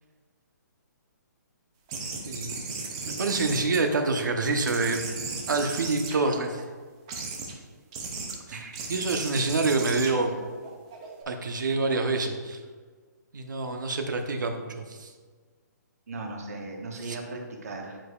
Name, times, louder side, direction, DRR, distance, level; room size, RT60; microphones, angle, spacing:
sound 1, 1.9-4.3 4.7-6.6 7.1-7.5 7.9-8.3 8.7-11.2, right 4 dB, 15° right, 0.5 m, -36 dB
voice 1, 2.2-2.6 3.0-5.0 5.5-6.6 8.5-8.6 8.9-10.4 11.3-12.6 13.3-15.1 17.0-17.2, right 3 dB, 80° right, 4 dB, 0.9 m, -27 dB
voice 2, 16.1-18.0, right 3 dB, 55° right, 1 dB, 1.2 m, -37 dB
9.0 x 4.9 x 2.4 m, 1.5 s
hypercardioid pair, 175°, 10 cm